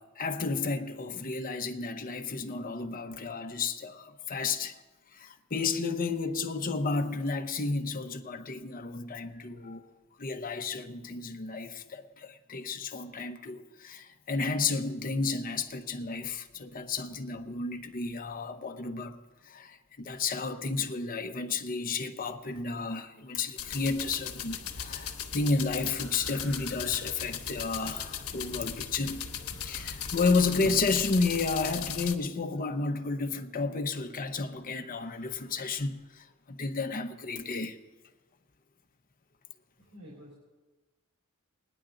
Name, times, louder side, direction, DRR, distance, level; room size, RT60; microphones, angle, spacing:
voice 1, 0.0-4.8 5.1-9.9 10.2-19.2 19.5-29.2 29.6-37.8, left 4 dB, 40° left, 0.8 m, -32 dB
sound 1, 23.6-32.1, left 8 dB, 70° left, 1.0 m, -38 dB
sound 2, 24.0-29.9, left 1 dB, 5° left, 2.7 m, -52 dB
voice 2, 39.8-40.4, equal, 90° right, 3.3 m, -49 dB
20.0 x 10.0 x 3.8 m
head